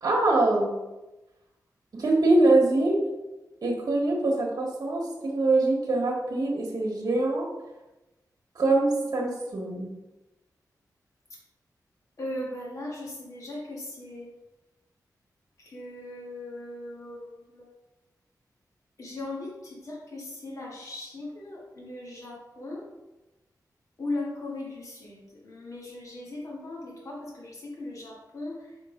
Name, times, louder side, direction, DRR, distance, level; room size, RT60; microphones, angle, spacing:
voice 1, 0.0-0.7 1.9-3.0 3.6-7.5 8.5-9.9, right 2 dB, 60° right, -2 dB, 1.4 m, -23 dB
voice 2, 12.2-14.3 15.6-17.7 19.0-22.9 24.0-28.7, left 2 dB, 50° left, -4 dB, 1.9 m, -38 dB
6.1 x 3.8 x 5.1 m, 1.0 s
wide cardioid pair, 100°, 7 cm